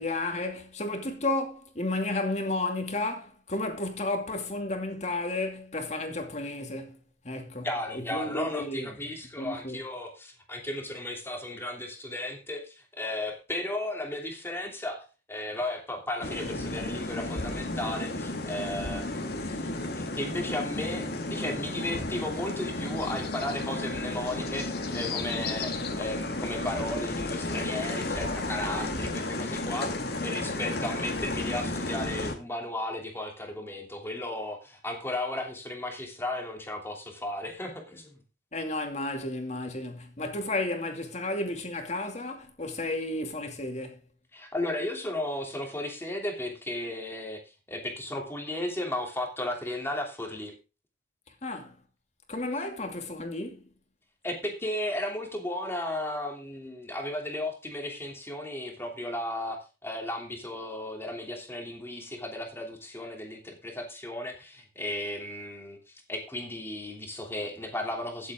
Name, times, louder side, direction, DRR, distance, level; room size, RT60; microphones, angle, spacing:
voice 1, 0.0-7.0 7.2-7.7 7.9-8.9 9.4-9.8 38.5-44.0 51.4-51.7 52.3-53.6, left 2 dB, 40° left, 2.4 m, -32 dB
voice 2, 7.6-38.1 44.3-47.4 47.7-50.5 54.2-65.8 66.1-68.3, left 1 dB, 15° left, 2.9 m, -35 dB
sound 1, 16.2-32.3, left 2 dB, 65° left, 2.1 m, -33 dB
15.5 x 8.1 x 3.7 m
head